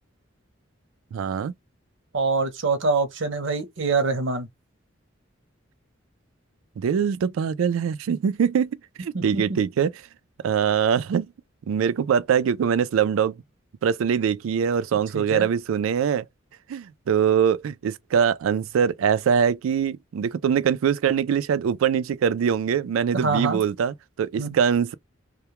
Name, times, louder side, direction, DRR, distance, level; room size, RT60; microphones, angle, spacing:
voice 1, 1.1-1.5 6.8-8.7 9.0-9.9 10.4-11.3 11.7-13.4 13.8-16.3 16.7-24.9, right 7 dB, 90° right, 0.3 m, -23 dB
voice 2, 2.1-4.5 9.1-9.6 15.1-15.5 23.1-23.6 24.4-24.6, right 4 dB, 70° right, 0.7 m, -25 dB
2.2 x 2.1 x 2.9 m
head